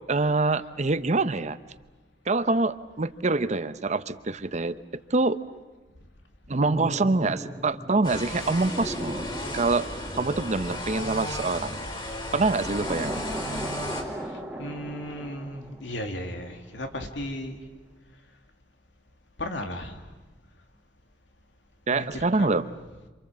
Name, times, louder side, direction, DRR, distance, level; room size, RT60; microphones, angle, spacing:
voice 1, 0.1-1.6 2.3-4.8 5.1-5.4 6.5-11.8 12.3-13.3 21.9-22.6, right 3 dB, 40° right, 13 dB, 0.8 m, -25 dB
sound 1, 6.6-11.6 12.5-16.5 16.8-17.0, equal, 5° right, 2.0 m, -38 dB
sound 2, 8.0-14.0, left 1 dB, 30° left, 4.1 m, -34 dB
voice 2, 14.3-17.7 19.4-20.1 21.9-22.7, left 1 dB, 90° left, 4 dB, 2.8 m, -36 dB
27.5 x 27.5 x 7.5 m, 1.2 s
head